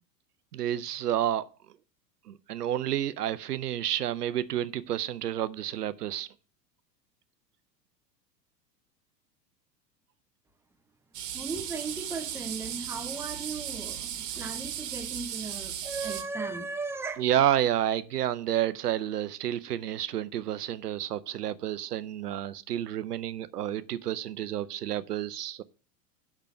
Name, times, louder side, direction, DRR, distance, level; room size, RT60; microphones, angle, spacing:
voice 1, 0.5-1.5 2.3-6.3 17.2-25.6, right 11 dB, 70° right, 0.6 m, -30 dB
sound 1, 11.1-16.2, right 10 dB, 45° right, 1.9 m, -36 dB
voice 2, 11.3-17.2, right 4 dB, 5° right, 0.8 m, -37 dB
6.7 x 5.9 x 7.5 m
figure-of-eight pair, 90°, 49 cm